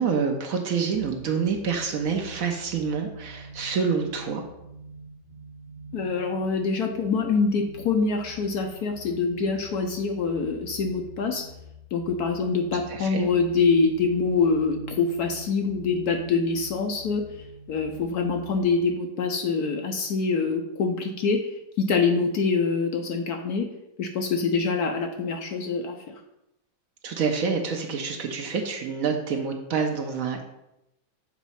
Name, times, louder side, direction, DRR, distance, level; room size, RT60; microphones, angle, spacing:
voice 1, 0.0-4.4 12.9-13.3 27.0-30.5, right 6 dB, 65° right, 3 dB, 0.9 m, -27 dB
sound 1, 0.9-18.8, right 1 dB, 40° right, 1.5 m, -45 dB
voice 2, 5.9-11.5 11.9-17.2 17.7-21.5 21.8-23.7 24.0-26.1, left 4 dB, 70° left, 4 dB, 1.0 m, -25 dB
7.2 x 3.0 x 5.5 m, 0.87 s
omnidirectional pair, 2.0 m